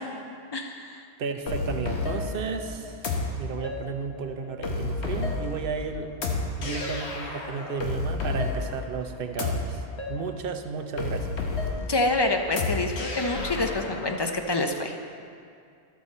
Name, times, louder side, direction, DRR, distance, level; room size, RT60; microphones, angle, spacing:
voice 1, 0.5-1.0 11.9-15.0, left 2 dB, 35° left, 4 dB, 0.4 m, -27 dB
voice 2, 1.2-3.0 3.3-6.1 6.6-9.8 10.1-11.4, right 5 dB, 60° right, 6 dB, 0.8 m, -33 dB
sound 1, 1.5-14.1, left 3 dB, 80° left, 1.3 m, -31 dB
12.5 x 6.4 x 4.1 m, 2.3 s
omnidirectional pair, 1.1 m